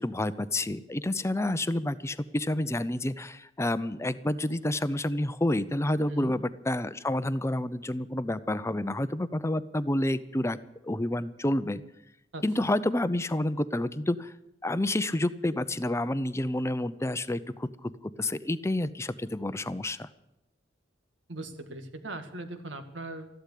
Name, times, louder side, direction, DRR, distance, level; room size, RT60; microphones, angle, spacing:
voice 1, 0.0-10.6 10.8-11.8 12.4-14.3 14.6-17.9 18.2-20.1, left 1 dB, 15° left, 14 dB, 0.6 m, -29 dB
voice 2, 12.3-12.7 21.3-23.3, right 2 dB, 85° right, 7 dB, 2.0 m, -40 dB
14.5 x 11.5 x 8.4 m, 0.86 s
head